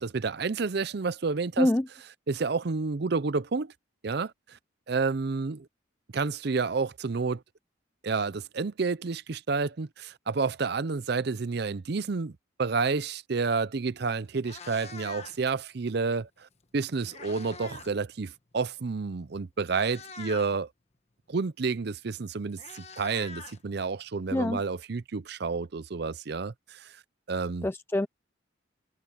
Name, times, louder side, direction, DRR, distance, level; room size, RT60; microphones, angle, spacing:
voice 1, 0.0-1.7 2.3-3.7 4.0-4.6 4.9-5.7 6.1-7.4 8.0-16.3 16.7-20.7 21.3-26.9 27.3-27.7, right 4 dB, 55° right, 0.5 m, -30 dB
Meow, 13.8-13.9 14.3-15.6 16.6-18.0 18.2-18.5 19.2-19.3 19.6-20.6 21.9-22.0 22.2-24.1, left 5 dB, 30° left, 1.2 m, -45 dB
voice 2, 27.6-28.1, left 1 dB, 10° left, 0.3 m, -25 dB
head